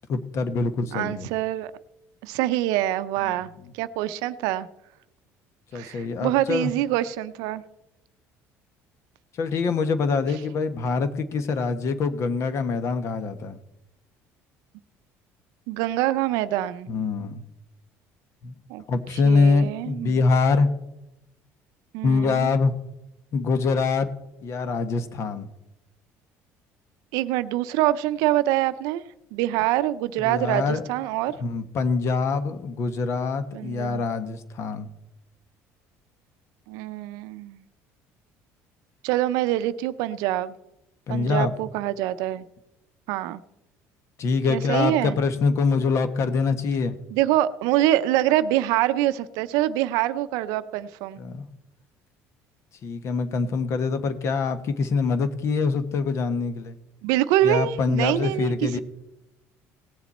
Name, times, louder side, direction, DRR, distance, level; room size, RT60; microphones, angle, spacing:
voice 1, 0.1-1.3 3.2-3.4 5.7-6.7 9.4-13.6 16.9-17.4 18.4-18.5 18.9-20.7 22.0-22.7 23.3-24.1 24.4-25.5 30.2-30.8 31.4-34.9 41.1-41.5 44.2-47.0 51.2-51.5 52.8-56.8 57.4-58.8, left 4 dB, 50° left, 11 dB, 1.1 m, -24 dB
voice 2, 0.9-1.7 2.2-4.7 5.7-7.6 15.7-16.9 18.7-18.8 19.2-20.2 21.9-22.5 27.1-29.0 29.3-31.3 33.5-34.0 36.7-37.6 39.0-40.5 41.1-42.4 43.1-43.4 44.5-45.2 47.1-51.2 57.0-58.8, right 14 dB, 85° right, 14 dB, 0.5 m, -25 dB
17.5 x 7.3 x 4.2 m, 0.90 s
cardioid pair, 115°, 6 cm